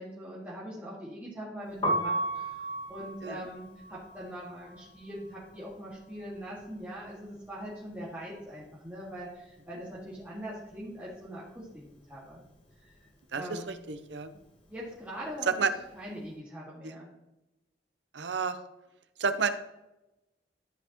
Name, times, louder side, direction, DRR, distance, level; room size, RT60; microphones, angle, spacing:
voice 1, 0.0-1.8 2.0-11.8 12.1-12.4 12.8-13.0 13.3-13.7 14.7-15.7 15.9-17.1, equal, 10° right, -9 dB, 1.8 m, -42 dB
Piano, 1.7-7.6 7.9-9.5 9.8-16.2, right 1 dB, 30° left, 1.5 m, -37 dB
voice 2, 13.3-14.3 15.6-15.7 16.8-17.0 18.1-18.6 19.2-19.5, right 5 dB, 80° right, 11 dB, 0.7 m, -31 dB
12.5 x 5.5 x 3.0 m, 0.98 s
head